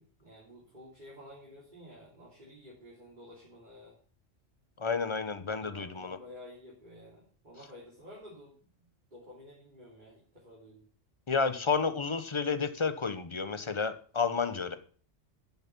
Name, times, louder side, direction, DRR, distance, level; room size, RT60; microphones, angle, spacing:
voice 1, 0.0-4.0 5.6-10.8, left 1 dB, 35° right, -6 dB, 3.7 m, -52 dB
voice 2, 4.8-6.2 11.3-14.8, left 5 dB, 25° left, 11 dB, 0.9 m, -31 dB
11.5 x 7.4 x 6.1 m, 0.42 s
omnidirectional pair, 1.3 m